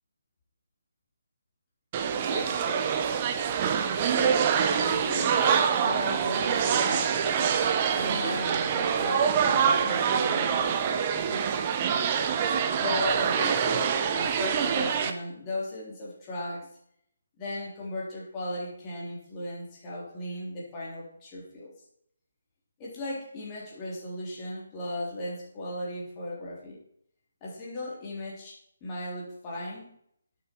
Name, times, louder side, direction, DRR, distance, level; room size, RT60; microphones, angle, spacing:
sound 1, 1.9-15.1, right 7 dB, 25° right, 0.9 m, -25 dB
voice 1, 2.1-2.9 3.2-3.3 4.1-7.2 7.9-12.0 12.8-16.8 17.4-21.7 22.8-26.8 27.4-29.9, left 1 dB, 20° left, -5 dB, 3.5 m, -37 dB
11.5 x 9.4 x 4.6 m, 0.69 s
hypercardioid pair, 170°, 0 cm